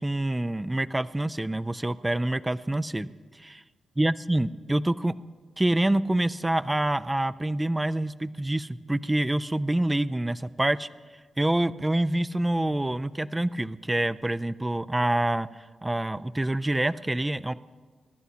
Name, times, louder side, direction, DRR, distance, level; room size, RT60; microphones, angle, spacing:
voice 1, 0.0-3.1 3.3-3.6 4.0-5.1 5.6-10.9 11.4-15.5 15.8-17.5, right 1 dB, 15° right, 15 dB, 0.3 m, -26 dB
23.0 x 11.5 x 2.8 m, 1.5 s
cardioid pair, 85°, 0 cm